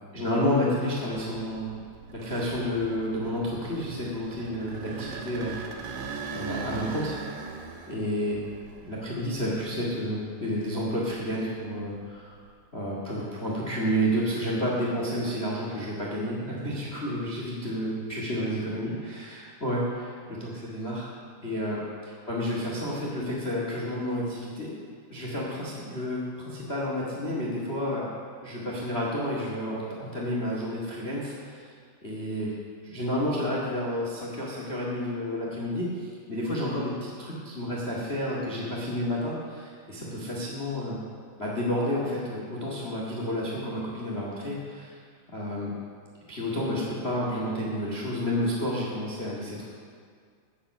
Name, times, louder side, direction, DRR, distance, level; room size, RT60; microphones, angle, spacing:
voice 1, 0.1-1.8 2.1-7.2 7.9-8.4 8.8-12.4 12.7-21.1 21.4-21.8 22.3-24.7 25.1-28.1 28.4-31.7 32.0-32.5 32.8-41.0 41.4-45.0 45.3-45.7 46.3-49.7, equal, 75° left, -4 dB, 0.5 m, -30 dB
sound 1, 1.5-10.2 10.7-12.5, right 4 dB, 80° right, 3.3 m, -40 dB
16.5 x 6.7 x 6.5 m, 2.1 s
omnidirectional pair, 5.0 m